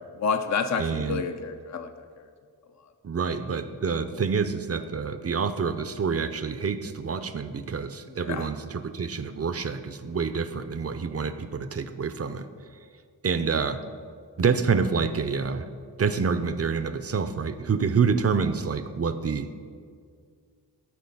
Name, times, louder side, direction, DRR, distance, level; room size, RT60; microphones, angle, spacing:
voice 1, 0.2-1.9 8.3-8.5, left 5 dB, 40° left, 8 dB, 0.6 m, -28 dB
voice 2, 0.8-1.2 3.0-12.5 13.2-13.8 14.4-15.7 16.0-19.5, right 5 dB, 35° right, 11 dB, 0.6 m, -27 dB
12.0 x 4.3 x 5.5 m, 2.1 s
cardioid pair, 45°, 43 cm